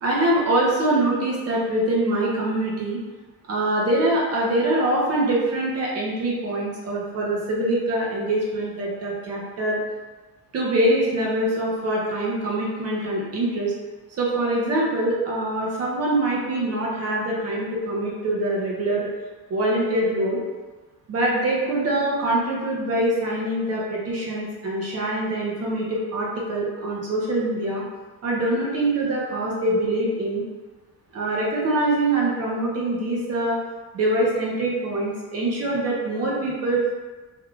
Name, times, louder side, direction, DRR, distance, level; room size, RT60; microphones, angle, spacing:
voice 1, 0.0-3.0 3.5-9.8 10.5-13.7 14.2-19.1 19.5-20.4 21.1-27.8 28.2-30.4 31.1-33.6 33.9-36.9, right 1 dB, 45° right, -4 dB, 0.8 m, -24 dB
3.5 x 2.3 x 2.4 m, 1.3 s
cardioid pair, 135°, 35 cm